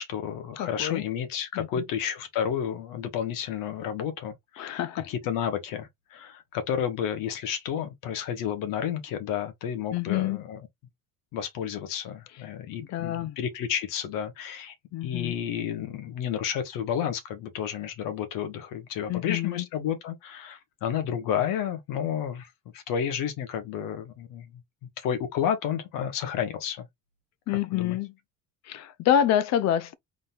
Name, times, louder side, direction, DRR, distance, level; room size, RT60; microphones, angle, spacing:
voice 1, 0.0-10.6 11.3-14.7 15.0-24.6 25.0-26.9 27.5-28.0, left 9 dB, 85° left, 1.5 m, -31 dB
voice 2, 0.6-1.0 1.5-1.8 4.6-5.1 9.9-10.4 12.9-13.4 14.9-15.3 19.1-19.7 27.5-28.1 28.6-30.0, left 10 dB, 55° left, 0.6 m, -27 dB
4.0 x 2.7 x 3.6 m
cardioid pair, 150°, 32 cm